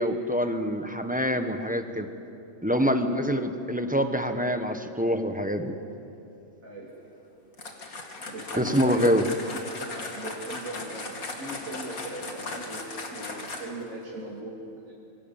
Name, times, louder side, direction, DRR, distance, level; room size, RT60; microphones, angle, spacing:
voice 1, 0.0-2.1 2.6-5.7 8.6-9.2, equal, 5° right, 6 dB, 1.1 m, -25 dB
voice 2, 2.8-3.3 6.6-6.9 8.2-9.2 9.9-14.9, right 1 dB, 70° right, -4 dB, 3.4 m, -39 dB
sound 1, 7.5-13.9, left 3 dB, 85° left, 2.8 m, -38 dB
27.5 x 23.5 x 7.3 m, 2.8 s
omnidirectional pair, 1.5 m